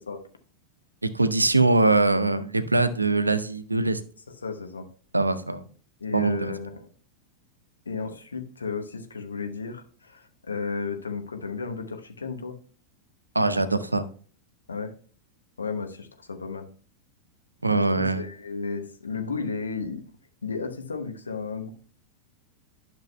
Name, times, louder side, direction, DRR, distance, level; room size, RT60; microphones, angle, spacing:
voice 1, 1.0-4.0 5.1-5.6 6.1-6.5 13.3-14.1 17.6-18.2, right 2 dB, 85° right, 13 dB, 0.5 m, -22 dB
voice 2, 4.4-4.9 6.0-6.9 7.9-12.6 14.7-14.9 15.6-16.7 17.7-20.0 20.4-21.7, left 4 dB, 75° left, 5 dB, 1.0 m, -33 dB
11.5 x 6.0 x 2.2 m, 0.43 s
figure-of-eight pair, 90°, 0 cm